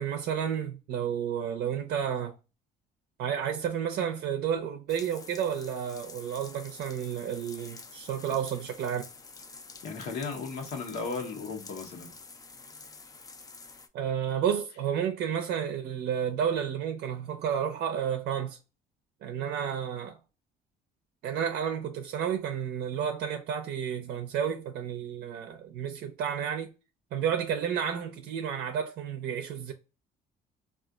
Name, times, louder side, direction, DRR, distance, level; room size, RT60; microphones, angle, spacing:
voice 1, 0.0-2.4 3.2-9.0 13.9-18.6 19.2-20.2 21.2-26.7 27.1-29.7, right 8 dB, 70° right, 0.5 m, -31 dB
sound 1, 4.9-13.9, left 4 dB, 20° left, 0.4 m, -48 dB
voice 2, 9.8-12.1, left 4 dB, 75° left, 0.9 m, -35 dB
3.7 x 2.4 x 2.3 m
cardioid pair, 110°, 17 cm